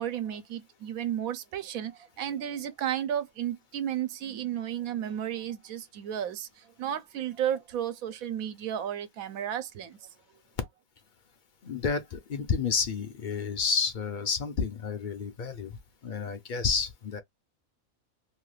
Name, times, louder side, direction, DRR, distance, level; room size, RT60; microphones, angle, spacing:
voice 1, 0.0-6.5 6.8-10.0, right 10 dB, 85° right, 1.1 m, -33 dB
voice 2, 11.6-15.8 16.0-17.2, left 5 dB, 50° left, 0.6 m, -30 dB
2.9 x 2.3 x 3.1 m
omnidirectional pair, 1.4 m